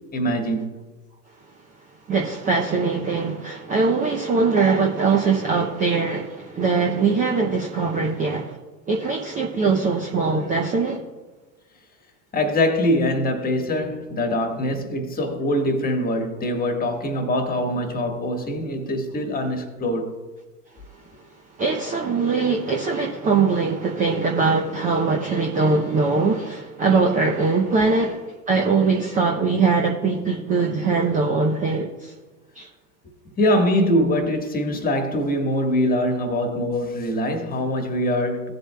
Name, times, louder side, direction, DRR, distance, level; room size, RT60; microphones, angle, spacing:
voice 1, 0.1-0.7 12.3-20.1 33.4-38.5, left 1 dB, 20° left, 1.5 m, -23 dB
voice 2, 2.1-8.6 8.9-11.0 21.6-32.1 32.6-32.7, right 4 dB, 15° right, 0.6 m, -22 dB
16.5 x 7.9 x 2.2 m
hypercardioid pair, 105°, 49 cm